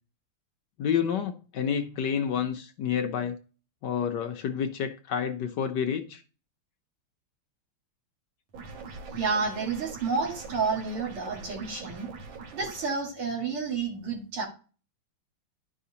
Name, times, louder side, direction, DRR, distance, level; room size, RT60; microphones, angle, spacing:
voice 1, 0.8-3.4 3.8-6.2, left 8 dB, 65° left, 1.1 m, -29 dB
sound 1, 8.5-12.9, right 4 dB, 65° right, 1.9 m, -43 dB
voice 2, 9.2-12.1 12.5-14.4, right 4 dB, 85° right, 2.8 m, -30 dB
11.0 x 5.6 x 2.8 m
omnidirectional pair, 2.3 m